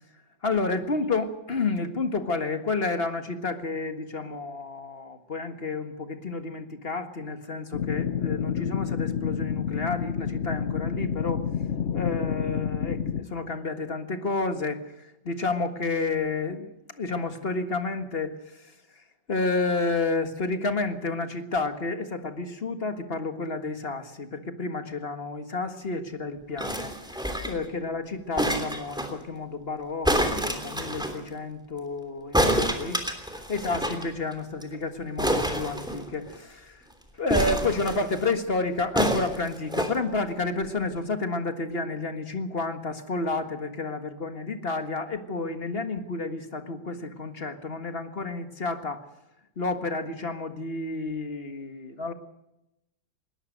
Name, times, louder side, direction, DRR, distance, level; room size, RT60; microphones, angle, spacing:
voice 1, 0.4-11.5 11.9-16.7 17.0-18.7 19.3-26.9 27.4-33.0 33.5-36.8 37.2-49.0 49.6-52.1, left 3 dB, 35° left, 7 dB, 1.8 m, -30 dB
sound 1, 7.7-13.2, left 8 dB, 50° left, 1.0 m, -29 dB
sound 2, 26.6-27.7 28.4-29.1 30.0-31.2 32.3-34.0 34.3-34.4 34.6-34.8 35.2-36.4 37.3-38.2 39.0-39.9 40.7-40.8, equal, ahead, 3.0 m, -27 dB
21.5 x 18.5 x 6.6 m, 0.89 s
omnidirectional pair, 1.9 m